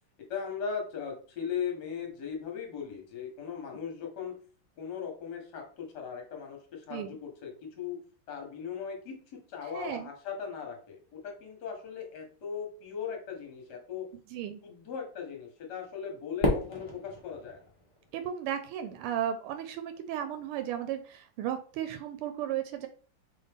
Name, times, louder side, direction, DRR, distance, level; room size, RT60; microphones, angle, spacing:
voice 1, 0.3-4.4 4.8-8.0 8.3-14.1 14.6-17.6, left 7 dB, 55° left, 2 dB, 1.6 m, -38 dB
voice 2, 9.7-10.1 14.3-14.6 18.1-22.9, right 10 dB, 85° right, 8 dB, 1.5 m, -35 dB
Fireworks, 16.4-18.7, left 2 dB, 35° left, 0.5 m, -32 dB
4.0 x 3.5 x 3.3 m, 0.41 s
omnidirectional pair, 2.4 m